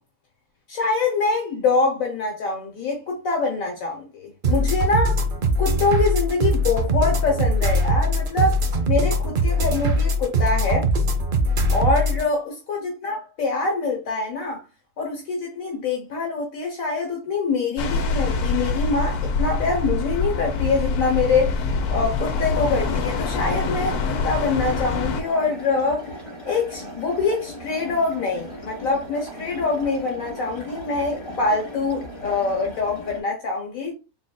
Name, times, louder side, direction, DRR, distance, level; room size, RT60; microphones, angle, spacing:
voice 1, 0.7-5.3 5.6-10.9 11.7-14.6 15.0-26.1 26.4-33.9, left 4 dB, 65° left, 1.3 m, -24 dB
sound 1, 4.4-12.2, equal, 55° right, 0.6 m, -21 dB
sound 2, 17.8-25.2, left 3 dB, 85° left, 1.2 m, -25 dB
sound 3, 22.3-33.2, equal, 35° left, 2.3 m, -38 dB
3.9 x 3.9 x 2.2 m
omnidirectional pair, 1.6 m